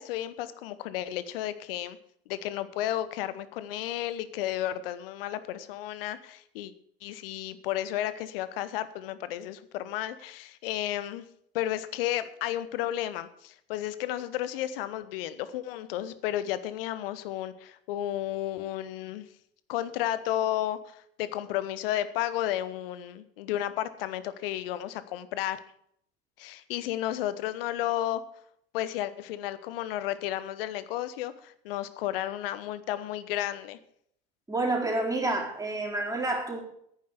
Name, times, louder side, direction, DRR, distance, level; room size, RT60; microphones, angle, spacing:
voice 1, 0.0-2.0 2.3-6.7 7.0-11.2 11.5-19.3 19.7-25.6 26.4-28.2 28.7-33.8, left 13 dB, 65° left, 14 dB, 1.0 m, -32 dB
voice 2, 34.5-36.6, right 2 dB, 10° right, -1 dB, 4.0 m, -29 dB
10.5 x 9.5 x 6.5 m, 0.69 s
figure-of-eight pair, 70°, 30 cm